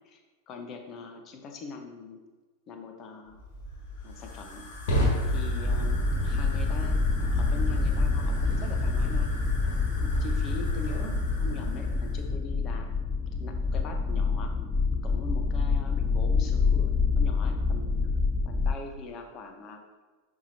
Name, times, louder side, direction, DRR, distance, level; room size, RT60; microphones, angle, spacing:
voice 1, 0.5-2.2 2.7-3.4 4.0-4.6 5.3-9.3 10.0-12.9 13.4-14.5 15.0-18.1 18.4-19.8, left 4 dB, 30° left, 4 dB, 1.1 m, -42 dB
Fire, 3.3-12.3, left 1 dB, 55° left, 2.2 m, -31 dB
Horror Drone Ambience, 5.6-18.7, left 4 dB, 10° left, 0.5 m, -27 dB
11.0 x 4.8 x 2.9 m, 1.3 s
figure-of-eight pair, 90°, 0 cm